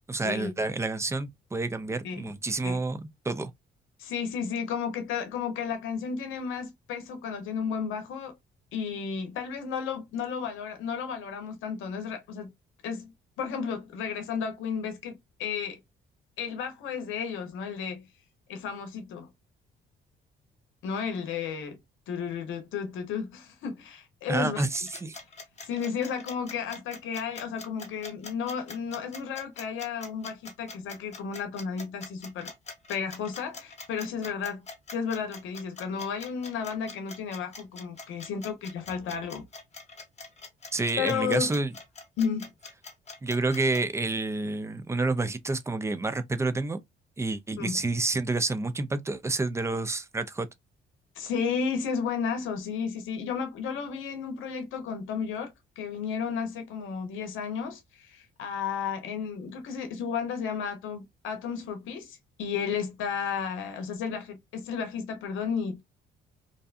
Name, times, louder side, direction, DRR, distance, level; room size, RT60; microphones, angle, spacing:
voice 1, 0.1-3.5 24.3-25.2 40.7-41.7 43.2-46.8 47.2-50.5, right 3 dB, 15° right, 0.4 m, -29 dB
voice 2, 4.0-8.4 8.7-12.5 12.8-13.1 13.4-15.8 16.4-18.0 18.5-19.3 20.8-21.8 22.1-24.6 25.6-32.5 32.9-34.6 34.9-39.4 41.0-41.6 42.2-42.5 47.6-47.8 51.2-65.8, left 6 dB, 85° left, 0.7 m, -33 dB
sound 1, 24.7-43.8, left 3 dB, 35° left, 0.9 m, -44 dB
2.6 x 2.2 x 2.4 m
cardioid pair, 90°, 20 cm